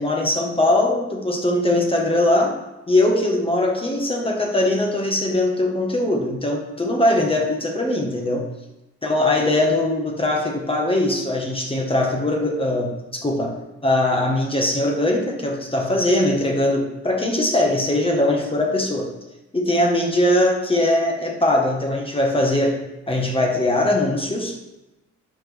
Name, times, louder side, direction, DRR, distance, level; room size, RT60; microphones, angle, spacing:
voice 1, 0.0-2.6 2.9-8.5 9.0-13.5 13.8-19.1 19.5-22.8 23.1-24.6, left 1 dB, 20° left, 0 dB, 1.5 m, -21 dB
12.0 x 4.5 x 3.5 m, 0.99 s
cardioid pair, 90°, 30 cm